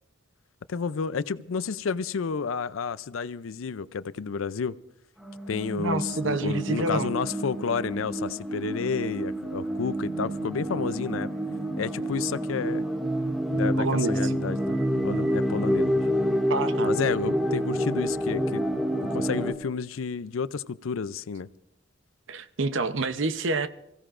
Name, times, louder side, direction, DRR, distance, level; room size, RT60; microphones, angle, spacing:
voice 1, 0.7-4.8 5.5-11.3 11.8-12.8 13.5-14.8 15.0-16.0 16.8-18.6 19.0-21.5, left 5 dB, 85° left, 0.5 m, -31 dB
sound 1, 5.2-19.5, equal, ahead, 0.9 m, -28 dB
voice 2, 5.8-7.1 13.8-14.3 16.5-16.9 22.3-23.7, right 3 dB, 70° right, 0.8 m, -28 dB
29.0 x 16.0 x 2.5 m
head